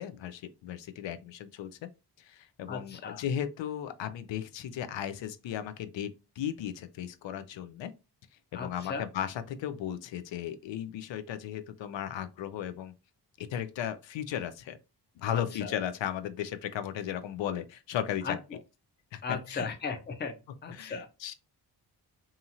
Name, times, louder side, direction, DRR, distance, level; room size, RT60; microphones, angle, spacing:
voice 1, 0.0-1.9 2.2-7.9 8.5-12.9 13.4-14.8 15.2-18.4 19.1-19.2 19.5-19.7 20.7-21.3, left 10 dB, 85° left, 0.5 m, -36 dB
voice 2, 2.7-3.2 8.5-9.1 15.3-15.8 18.2-18.6 19.2-21.1, left 5 dB, 25° left, 0.5 m, -37 dB
2.8 x 2.5 x 2.7 m
wide cardioid pair, 120°, 43 cm